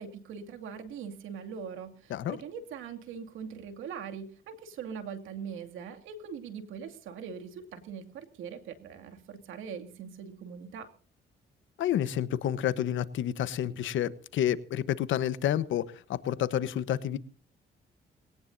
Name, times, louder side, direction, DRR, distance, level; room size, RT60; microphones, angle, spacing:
voice 1, 0.0-10.9, right 7 dB, 85° right, 5 dB, 2.5 m, -42 dB
voice 2, 11.8-17.2, left 11 dB, 75° left, 15 dB, 1.1 m, -29 dB
21.5 x 18.0 x 2.7 m, 0.43 s
cardioid pair, 90°, 20 cm